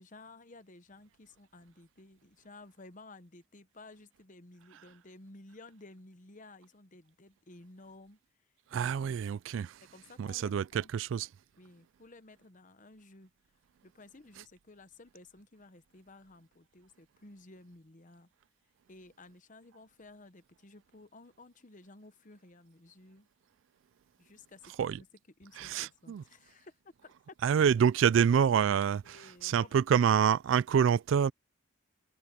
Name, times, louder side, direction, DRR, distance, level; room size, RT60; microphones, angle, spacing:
voice 1, 0.0-8.2 8.7-9.1 9.8-10.9 11.6-13.3 13.8-18.3 18.9-23.3 24.2-25.1 25.4-27.4 29.0-29.7, left 2 dB, 40° left, 1.0 m, -54 dB
voice 2, 8.7-9.8 10.2-11.3 24.8-25.0 25.6-26.2 27.4-31.3, right 7 dB, 65° right, 0.3 m, -27 dB
head